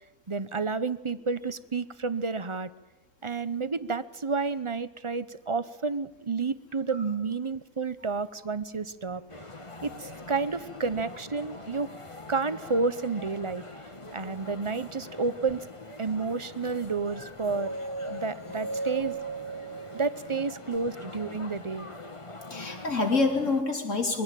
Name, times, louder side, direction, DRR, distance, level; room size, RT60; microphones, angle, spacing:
voice 1, 0.3-2.7 3.2-9.2 9.8-11.9 12.3-13.6 14.1-15.7 16.0-17.8 18.1-19.2 19.9-21.9, right 4 dB, 25° right, 14 dB, 0.8 m, -30 dB
sound 1, 9.3-23.6, left 2 dB, 20° left, 1.4 m, -44 dB
sound 2, 17.1-21.2, right 3 dB, 10° right, 1.3 m, -37 dB
voice 2, 22.5-24.2, left 3 dB, 55° left, 3 dB, 3.8 m, -27 dB
23.5 x 17.0 x 9.1 m, 1.1 s
omnidirectional pair, 1.5 m